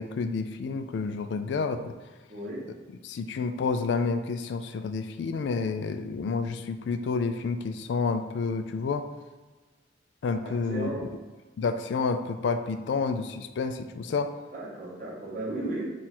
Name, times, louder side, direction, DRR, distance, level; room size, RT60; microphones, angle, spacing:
voice 1, 0.0-1.9 3.0-9.1 10.2-11.1 11.6-14.3, left 4 dB, 75° left, 8 dB, 0.3 m, -29 dB
voice 2, 2.3-2.6 10.7-11.0 14.5-15.8, right 2 dB, 50° right, -5 dB, 1.1 m, -34 dB
3.8 x 2.4 x 4.3 m, 1.3 s
head